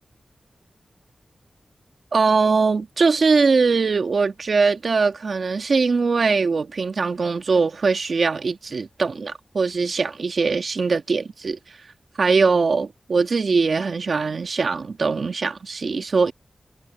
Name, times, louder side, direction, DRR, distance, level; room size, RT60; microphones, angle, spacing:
voice 1, 2.1-11.6 12.2-16.3, right 4 dB, 70° right, 2.0 m, -21 dB
cardioid pair, 60°, 0 cm